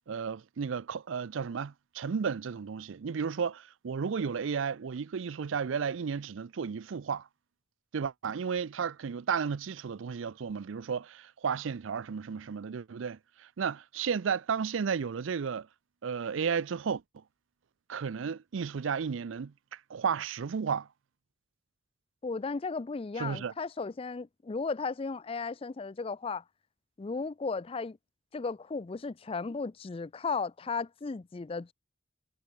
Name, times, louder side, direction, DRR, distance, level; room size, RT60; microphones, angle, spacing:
voice 1, 0.1-7.3 7.9-15.7 16.0-17.0 17.9-20.9 23.2-23.5, right 6 dB, 80° right, 0.5 m, -33 dB
voice 2, 22.2-26.4 27.0-28.0 28.3-31.7, left 4 dB, 30° left, 0.4 m, -35 dB
head